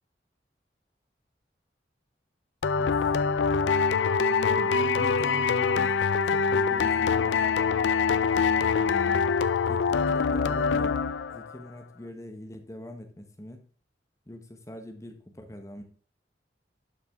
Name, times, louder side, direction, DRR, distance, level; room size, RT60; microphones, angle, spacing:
sound 1, 2.6-11.5, left 5 dB, 90° left, 0.4 m, -24 dB
voice 1, 4.3-7.5 8.4-9.2 9.7-11.0 11.3-13.7 14.3-15.8, left 1 dB, 15° left, 5 dB, 1.1 m, -43 dB
11.5 x 5.9 x 3.6 m, 0.43 s
head